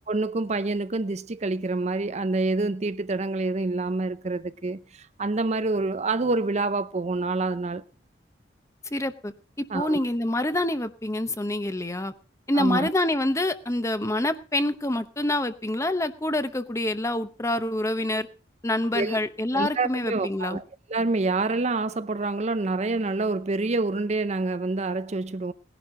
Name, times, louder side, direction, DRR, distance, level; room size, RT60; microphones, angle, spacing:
voice 1, 0.1-7.8 9.7-10.0 12.5-12.9 18.9-19.2 19.5-20.6 20.9-25.5, right 3 dB, 40° right, 0.6 m, -27 dB
voice 2, 8.9-9.3 9.7-12.1 12.5-18.3 18.6-20.6, left 1 dB, 15° left, 0.9 m, -26 dB
18.5 x 11.0 x 3.9 m
head